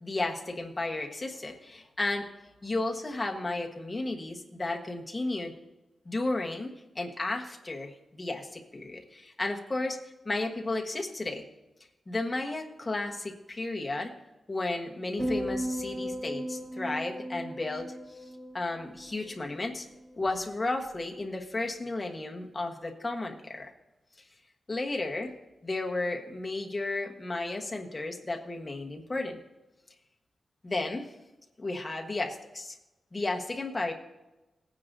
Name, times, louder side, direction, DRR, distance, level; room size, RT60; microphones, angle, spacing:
voice 1, 0.0-2.3 2.6-5.5 6.0-10.0 10.2-11.4 12.1-14.1 14.5-17.9 18.5-19.8 20.2-23.7 24.7-25.3 25.6-29.4 30.6-31.1 31.6-32.8 33.1-33.9, left 2 dB, 20° left, 1 dB, 1.3 m, -33 dB
sound 1, 15.2-19.6 19.9-20.3, equal, 30° right, 3.5 m, -36 dB
17.5 x 9.6 x 2.7 m, 1.0 s
wide cardioid pair, 170°, 0 cm